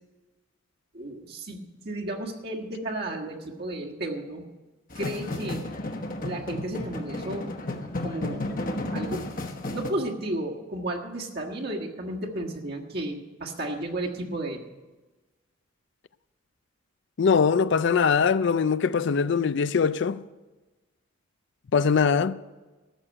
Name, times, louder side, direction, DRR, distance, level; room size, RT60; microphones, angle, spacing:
voice 1, 0.9-1.6 1.8-4.4 4.9-5.7 6.2-7.5 8.0-9.2 9.7-14.6, right 1 dB, 50° right, 1.6 m, -33 dB
sound 1, 4.9-9.9, left 2 dB, 40° left, 1.1 m, -33 dB
voice 2, 17.2-20.2 21.7-22.3, left 6 dB, 60° left, 0.4 m, -22 dB
13.5 x 6.8 x 8.6 m
head